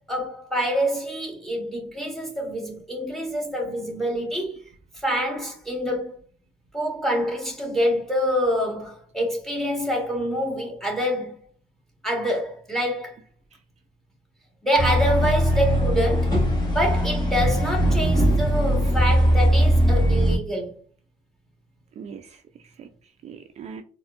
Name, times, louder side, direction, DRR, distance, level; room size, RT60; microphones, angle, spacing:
voice 1, 0.0-4.6 5.0-6.2 6.7-11.4 12.0-13.2 14.6-16.4 16.7-20.7, equal, ahead, 1.5 m, -26 dB
sound 1, 14.8-20.4, equal, 30° left, 1.6 m, -20 dB
voice 2, 22.0-23.8, right 6 dB, 45° right, 0.4 m, -42 dB
4.0 x 2.6 x 2.5 m
cardioid pair, 95°, 15 cm